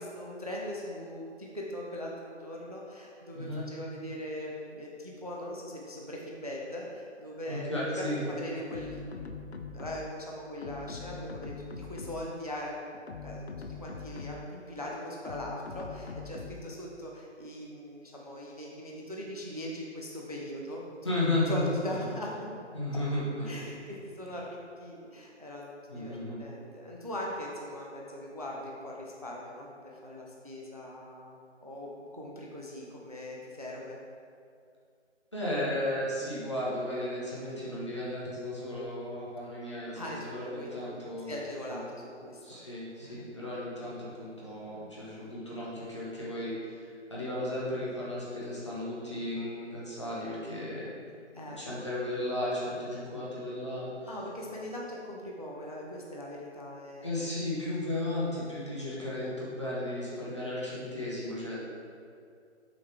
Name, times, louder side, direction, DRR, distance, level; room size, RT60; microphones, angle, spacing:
voice 1, 0.0-7.7 8.0-13.5 13.8-21.0 21.5-22.6 22.9-23.0 23.5-26.1 26.4-34.0 40.0-40.9 41.3-42.6 43.0-43.2 51.3-51.6 54.1-57.1, left 1 dB, 35° right, -2 dB, 0.5 m, -40 dB
voice 2, 3.3-3.7 7.5-8.2 21.0-22.0 22.7-23.6 24.3-24.4 25.9-26.4 35.3-41.4 41.7-41.8 42.4-50.9 51.6-54.1 57.0-61.6, left 1 dB, 25° left, -8 dB, 1.0 m, -34 dB
sound 1, 8.7-10.2 10.6-12.4 12.9-14.6 15.2-16.8, left 4 dB, 65° left, 0.5 m, -42 dB
6.2 x 3.9 x 4.5 m, 2.4 s
hypercardioid pair, 180°, 36 cm